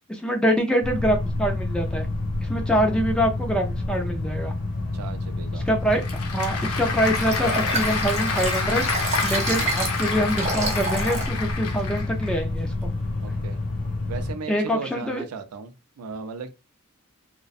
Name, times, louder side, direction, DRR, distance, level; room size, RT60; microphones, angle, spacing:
voice 1, 0.1-2.1 2.4-4.5 5.7-6.0 6.3-8.9 9.2-12.9 14.5-15.2, equal, 5° left, 0.4 m, -25 dB
sound 1, 0.8-14.3, left 2 dB, 40° left, 0.7 m, -29 dB
voice 2, 4.9-5.7 9.5-9.8 13.2-13.6 14.1-16.5, right 5 dB, 80° right, 0.4 m, -37 dB
Applause / Crowd, 5.6-12.4, left 4 dB, 75° left, 0.6 m, -29 dB
Liquid, 7.1-11.3 11.8-11.9, right 2 dB, 30° right, 0.7 m, -30 dB
2.5 x 2.1 x 2.3 m
head